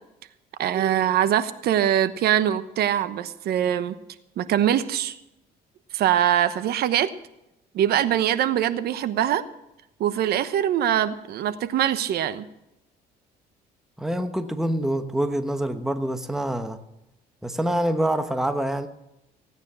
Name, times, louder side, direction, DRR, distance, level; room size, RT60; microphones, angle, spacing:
voice 1, 0.6-3.9 4.4-5.1 5.9-7.1 7.7-9.4 10.0-12.4, right 10 dB, 70° right, 13 dB, 1.1 m, -23 dB
voice 2, 14.0-16.8 17.4-18.9, right 1 dB, ahead, 8 dB, 1.1 m, -26 dB
16.5 x 9.5 x 6.3 m, 0.88 s
cardioid pair, 110°, 17 cm